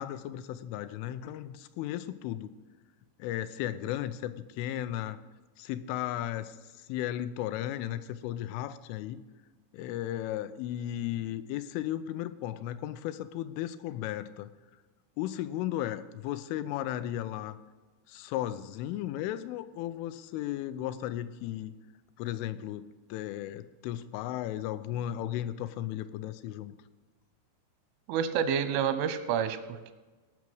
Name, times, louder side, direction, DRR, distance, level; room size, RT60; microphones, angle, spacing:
voice 1, 0.0-2.5 3.2-5.2 5.6-6.6 6.9-9.2 9.7-14.5 15.2-17.6 18.1-21.7 22.2-26.7, left 12 dB, 90° left, 12 dB, 3.1 m, -35 dB
voice 2, 28.1-29.9, right 8 dB, 90° right, 11 dB, 3.4 m, -29 dB
17.5 x 6.1 x 6.2 m, 1.2 s
omnidirectional pair, 5.5 m